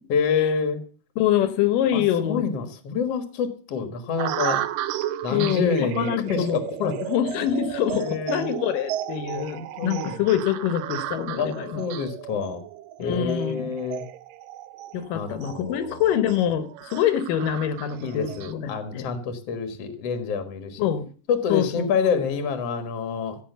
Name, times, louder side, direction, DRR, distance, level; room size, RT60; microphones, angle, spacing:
voice 1, 0.1-0.8 1.9-4.6 5.2-6.9 8.0-8.5 9.3-10.2 11.4-12.6 13.0-14.0 15.1-16.0 18.0-20.9 21.3-23.4, left 6 dB, 55° left, 8 dB, 2.2 m, -27 dB
voice 2, 1.2-2.4 5.3-11.8 13.0-13.7 14.9-19.1 20.8-21.1 21.5-22.1, left 10 dB, 75° left, 12 dB, 2.6 m, -25 dB
sound 1, 4.2-18.5, right 13 dB, 85° right, 2.4 m, -34 dB
15.5 x 6.3 x 7.9 m, 0.42 s
omnidirectional pair, 4.0 m